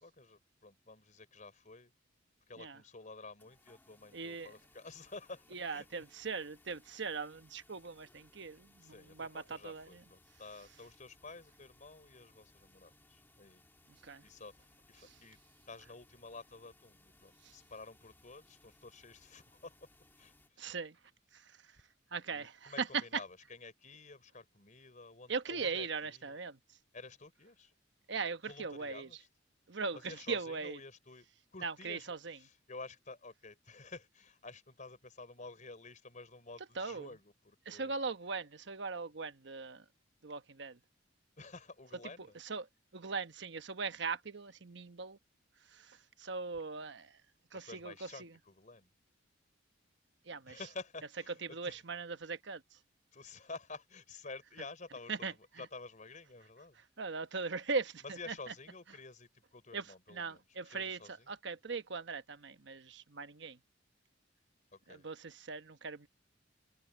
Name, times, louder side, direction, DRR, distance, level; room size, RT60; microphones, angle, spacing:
voice 1, 0.0-1.9 2.5-5.9 8.8-13.6 14.2-15.4 15.7-19.9 20.2-20.7 22.3-26.3 26.9-27.7 28.4-29.3 29.9-31.3 31.5-38.0 41.4-42.4 47.5-48.9 50.5-51.8 53.1-56.8 58.0-61.3 64.7-65.0, left 3 dB, 40° left, 4.6 m, -51 dB
sound 1, 3.4-20.5, left 2 dB, 10° left, 2.0 m, -66 dB
voice 2, 4.1-4.5 5.5-10.0 14.0-14.2 15.0-15.1 17.4-17.5 20.6-21.0 21.3-21.6 22.1-23.0 25.3-26.6 28.1-29.1 29.7-30.8 31.6-32.4 36.8-37.1 37.7-39.8 40.2-40.8 42.4-42.7 42.9-45.2 45.7-47.2 47.5-48.3 50.2-50.6 51.5-52.8 55.1-55.3 57.0-58.3 59.7-59.9 60.1-63.6 64.9-66.1, right 4 dB, 65° right, 1.0 m, -40 dB
open air
head